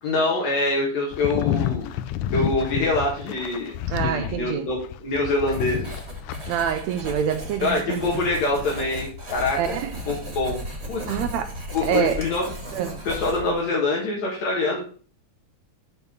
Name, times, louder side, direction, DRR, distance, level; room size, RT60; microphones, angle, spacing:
voice 1, 0.0-1.9 2.3-3.7 4.0-6.0 7.6-9.7 10.1-10.6 10.9-11.2 11.7-12.4 13.1-14.8, left 2 dB, 65° left, 2.6 m, -25 dB
sound 1, 1.1-6.5, left 11 dB, 80° left, 2.0 m, -29 dB
voice 2, 3.9-4.7 6.5-8.1 9.5-10.0 11.1-12.3 12.7-13.0 13.4-13.6, right 9 dB, 80° right, 1.7 m, -26 dB
Writing, 5.5-13.7, left 1 dB, 25° right, 2.2 m, -35 dB
7.0 x 4.2 x 6.7 m
omnidirectional pair, 3.5 m